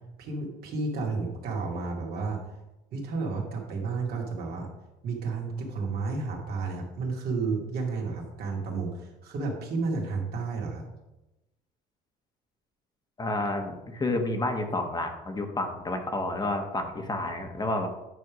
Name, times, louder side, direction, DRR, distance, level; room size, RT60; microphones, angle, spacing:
voice 1, 0.2-2.5 2.9-4.7 5.0-10.8, right 4 dB, 65° right, -1 dB, 2.2 m, -32 dB
voice 2, 13.2-17.9, left 2 dB, 25° left, 4 dB, 1.1 m, -30 dB
9.5 x 3.4 x 6.0 m, 0.97 s
cardioid pair, 110°, 17 cm